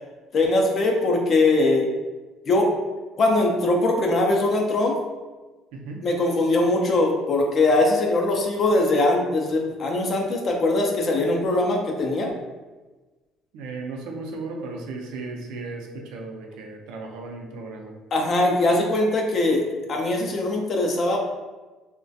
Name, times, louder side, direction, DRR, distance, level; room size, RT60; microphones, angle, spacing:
voice 1, 0.3-1.9 2.5-2.7 3.2-5.0 6.0-12.3 18.1-19.6 19.9-21.2, left 2 dB, 45° left, 1 dB, 0.4 m, -21 dB
voice 2, 13.5-18.0, right 3 dB, 80° right, 1 dB, 0.4 m, -35 dB
2.3 x 2.1 x 2.6 m, 1.2 s
cardioid pair, 100°, 0 cm